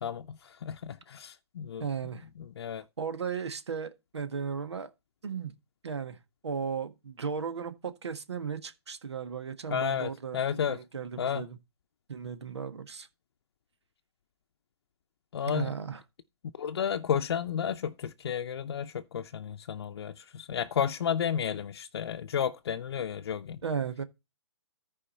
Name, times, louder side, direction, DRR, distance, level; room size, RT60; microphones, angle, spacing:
voice 1, 0.0-1.8 2.6-2.8 9.7-10.8 11.2-11.4 15.3-15.7 16.6-23.6, left 8 dB, 65° left, 0.6 m, -32 dB
voice 2, 1.8-2.2 3.0-4.9 5.2-5.5 5.8-11.6 12.1-13.1 15.4-16.0 23.6-24.0, right 6 dB, 80° right, 1.5 m, -36 dB
14.0 x 4.8 x 4.2 m
hypercardioid pair, 140°, 14 cm